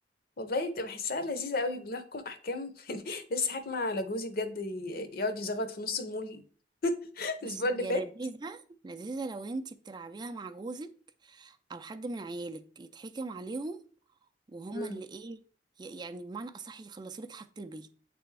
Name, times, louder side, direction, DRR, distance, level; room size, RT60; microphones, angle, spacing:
voice 1, 0.4-6.4 6.8-8.0 14.7-15.0, left 2 dB, 55° left, 0.7 m, -33 dB
voice 2, 7.4-10.9 11.2-13.8 14.5-15.4 15.8-17.9, right 3 dB, 25° right, 0.4 m, -40 dB
8.6 x 3.4 x 3.3 m
head